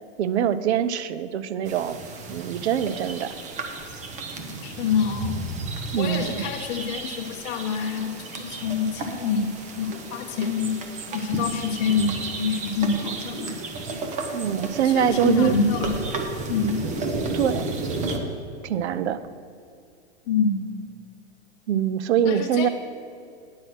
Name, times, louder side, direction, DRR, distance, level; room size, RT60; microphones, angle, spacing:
voice 1, 0.2-2.0 2.3-3.3 5.9-6.4 14.3-15.6 17.3-17.8 18.6-19.2 21.7-22.7, right 9 dB, 65° right, 14 dB, 0.6 m, -24 dB
sound 1, 1.7-18.2, right 3 dB, 20° right, 0.8 m, -33 dB
voice 2, 4.6-5.4 6.0-10.8 11.1-13.6 14.8-16.0 16.5-16.8 20.3-20.7 22.3-22.7, left 5 dB, 35° left, 2 dB, 0.9 m, -26 dB
9.5 x 6.3 x 6.0 m, 2.5 s
hypercardioid pair, 135°, 36 cm